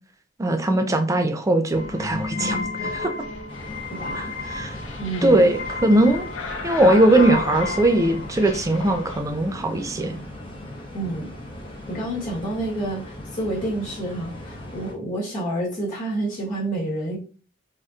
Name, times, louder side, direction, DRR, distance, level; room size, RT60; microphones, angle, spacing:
voice 1, 0.4-3.1 4.1-4.8 5.2-6.3 6.6-10.2, right 1 dB, 15° right, 5 dB, 0.4 m, -20 dB
sound 1, 1.7-9.2, left 3 dB, 85° left, 0.6 m, -31 dB
sound 2, 3.5-14.9, left 1 dB, 25° left, 0.8 m, -39 dB
voice 2, 3.9-4.3 5.0-5.5 10.9-11.3 11.9-17.2, right 1 dB, 45° left, -5 dB, 1.1 m, -29 dB
3.4 x 2.7 x 2.4 m, 0.36 s
head